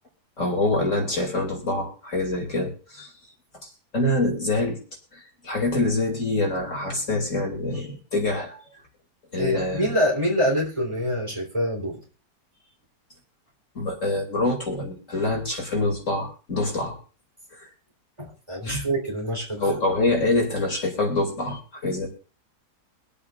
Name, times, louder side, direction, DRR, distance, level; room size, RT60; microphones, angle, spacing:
voice 1, 0.4-3.1 3.6-4.8 5.1-8.6 9.3-9.9 13.7-17.0 17.5-17.7 18.6-18.8 19.6-22.1, left 2 dB, 45° left, 1 dB, 3.0 m, -25 dB
voice 2, 9.4-12.0 18.2-19.6, equal, 15° right, -1 dB, 3.7 m, -25 dB
24.0 x 8.4 x 2.5 m, 0.36 s
omnidirectional pair, 1.8 m